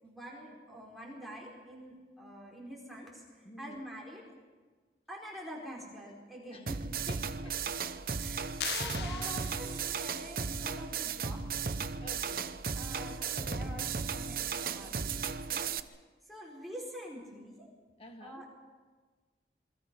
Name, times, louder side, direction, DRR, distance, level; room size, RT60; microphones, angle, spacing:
voice 1, 0.0-4.2 5.1-6.8 8.2-11.6 12.7-15.9 16.3-17.7 18.2-18.5, equal, ahead, -3 dB, 4.6 m, -46 dB
voice 2, 3.5-3.9 6.5-7.8 12.0-12.5 18.0-18.5, left 1 dB, 30° left, 5 dB, 1.9 m, -50 dB
sound 1, 6.7-15.8, right 6 dB, 55° right, 0.8 m, -35 dB
sound 2, 8.6-10.1, left 10 dB, 70° left, 0.6 m, -40 dB
27.5 x 23.0 x 5.4 m, 1.4 s
head